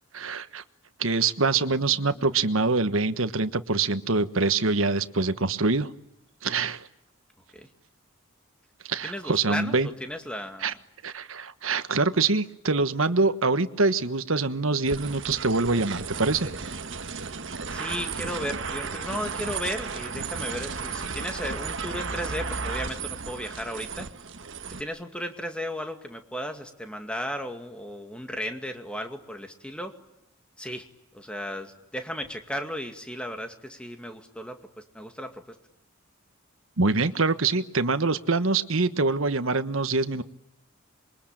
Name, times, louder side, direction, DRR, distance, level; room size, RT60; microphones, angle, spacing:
voice 1, 0.1-0.6 1.0-5.9 6.4-6.9 8.8-9.9 10.6-10.7 11.0-16.5 36.8-40.2, right 3 dB, 80° right, 11 dB, 1.3 m, -25 dB
voice 2, 1.8-2.4 7.5-7.7 9.0-10.8 17.7-24.1 24.7-29.9 30.6-30.9 31.1-35.6, equal, 5° left, 5 dB, 2.2 m, -35 dB
sound 1, 14.9-24.8, right 5 dB, 60° right, 1.5 m, -34 dB
27.0 x 23.0 x 9.0 m, 0.88 s
head